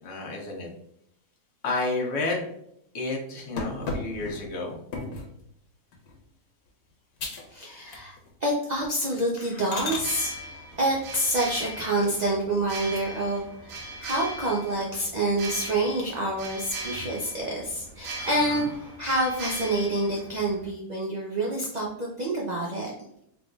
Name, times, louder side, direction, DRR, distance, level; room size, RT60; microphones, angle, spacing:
voice 1, 0.0-0.7 1.6-2.5 2.9-4.8 18.5-18.6, left 2 dB, 60° left, -1 dB, 1.2 m, -30 dB
sound 1, 3.6-5.4 5.9-6.2 6.7-6.8 7.2-7.5 7.8-8.4 8.7-8.9 9.4-10.1 12.1-12.8 13.2-13.3 13.7-13.8 14.1-14.9 15.3-15.9 16.3-16.9 17.4-19.1, left 3 dB, 85° left, 1.3 m, -37 dB
voice 2, 7.5-8.2 8.4-10.3 10.8-22.9, right 1 dB, 50° right, -3 dB, 0.5 m, -27 dB
sound 2, 9.9-20.7, right 2 dB, 70° right, 1.0 m, -39 dB
3.8 x 3.5 x 2.4 m, 0.75 s
omnidirectional pair, 1.5 m